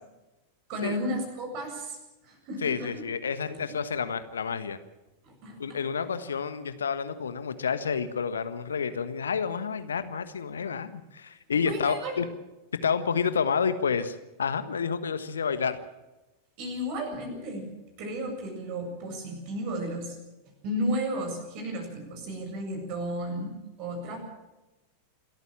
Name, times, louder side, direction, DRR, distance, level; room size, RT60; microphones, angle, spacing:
voice 1, 0.7-2.0 2.2-3.0 3.5-3.6 5.2-5.8 11.7-12.1 16.6-17.7 18.0-20.2 20.6-24.2, equal, 45° right, 4 dB, 7.8 m, -33 dB
voice 2, 2.6-4.8 5.6-12.2 12.8-15.8, left 6 dB, 70° left, 12 dB, 1.4 m, -29 dB
27.5 x 14.0 x 7.4 m, 1.0 s
figure-of-eight pair, 90°, 0 cm